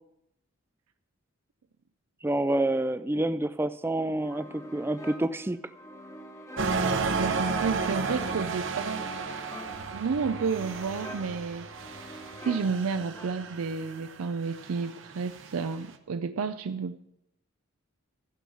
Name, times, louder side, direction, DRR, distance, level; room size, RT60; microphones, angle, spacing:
voice 1, 2.2-5.7, right 1 dB, 10° right, 13 dB, 0.3 m, -28 dB
sound 1, 4.2-13.7, equal, 15° left, 0.8 m, -46 dB
sound 2, 6.6-15.8, right 4 dB, 60° right, 0.8 m, -33 dB
voice 2, 7.2-9.0 9.9-12.0 12.4-17.0, right 5 dB, 85° right, 9 dB, 0.5 m, -31 dB
15.0 x 5.5 x 6.3 m, 0.82 s
head